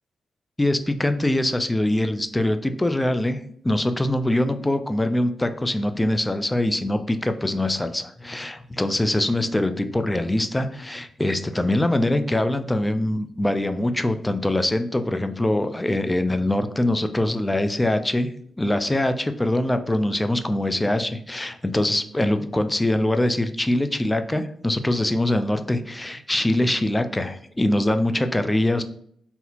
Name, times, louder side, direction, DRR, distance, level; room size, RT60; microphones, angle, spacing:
voice 1, 0.6-18.3 18.6-28.8, left 1 dB, 15° left, 9 dB, 0.4 m, -23 dB
3.9 x 2.7 x 2.8 m, 0.64 s
cardioid pair, 55°, 0 cm